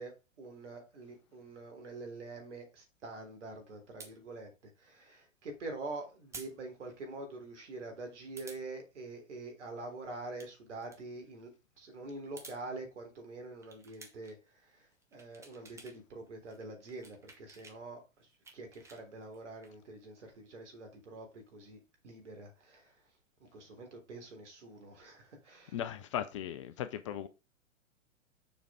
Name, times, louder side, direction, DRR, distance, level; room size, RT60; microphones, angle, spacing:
voice 1, 0.0-4.5 4.8-11.5 11.8-14.4 14.8-22.9 23.4-25.8, right 2 dB, 65° right, 3.6 m, -45 dB
sound 1, 4.0-4.1 6.3-6.5 6.9-7.0 8.4-8.6 10.2-10.5 10.8-11.0 12.2-12.6 13.6-14.4 14.9-16.0 16.3-17.8 18.2-19.7, right 3 dB, 5° right, 1.1 m, -52 dB
voice 2, 25.7-27.3, left 10 dB, 25° left, 0.4 m, -37 dB
7.0 x 5.1 x 4.8 m
figure-of-eight pair, 105°, 39 cm